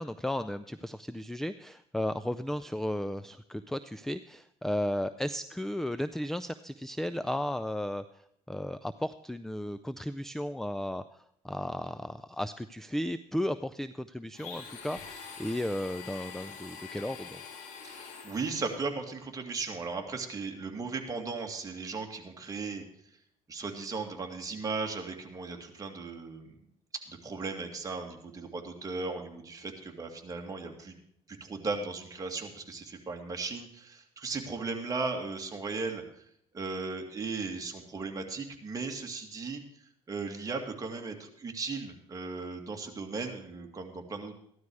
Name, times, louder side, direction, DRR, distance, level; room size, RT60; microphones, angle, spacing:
voice 1, 0.0-17.4, left 1 dB, 5° left, 13 dB, 0.4 m, -34 dB
Domestic sounds home sounds, 14.3-18.8, left 6 dB, 70° left, 2.6 m, -45 dB
voice 2, 17.8-22.8 23.5-26.5 27.1-31.0 31.3-36.0 36.5-39.6 40.1-44.4, right 4 dB, 25° right, 2 dB, 2.3 m, -36 dB
14.5 x 11.5 x 4.8 m, 0.71 s
cardioid pair, 110°, 13 cm